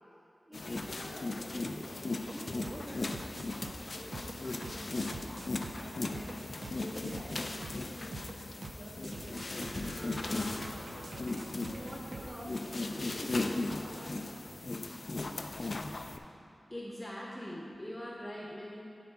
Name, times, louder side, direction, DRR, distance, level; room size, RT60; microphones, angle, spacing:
sound 1, 0.5-16.2, left 2 dB, 55° left, 0.3 m, -37 dB
voice 1, 0.5-1.9 2.2-5.2 5.7-12.5 12.9-14.6, equal, 25° right, -7 dB, 1.0 m, -48 dB
sound 2, 2.3-12.3, right 2 dB, 65° right, 0.4 m, -45 dB
voice 2, 16.7-18.8, equal, 10° left, -5 dB, 0.9 m, -42 dB
10.0 x 3.8 x 3.5 m, 2.9 s
wide cardioid pair, 60°, 0 cm